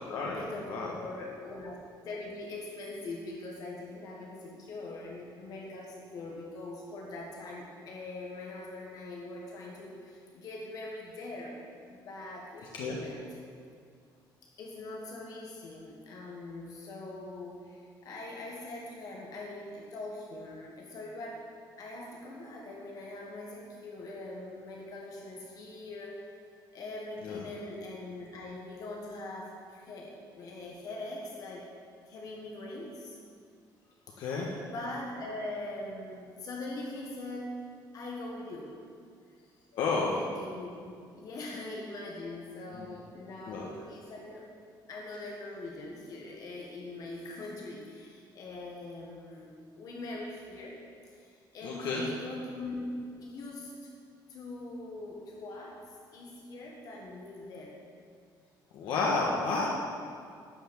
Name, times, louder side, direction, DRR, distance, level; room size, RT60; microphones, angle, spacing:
voice 1, 0.2-1.8 2.0-11.6 11.9-13.3 14.6-21.5 21.8-26.2 26.7-31.7 32.0-33.2 33.9-38.7 39.9-44.4 44.9-50.8 51.0-53.9 54.3-57.8, left 2 dB, 50° left, -1 dB, 1.6 m, -42 dB
voice 2, 34.2-34.5 39.7-40.1 42.7-42.9 43.5-43.7 51.6-52.0 58.7-59.7, left 3 dB, 90° left, -3 dB, 1.4 m, -31 dB
12.5 x 5.9 x 8.8 m, 2.3 s
cardioid pair, 180°, 8 cm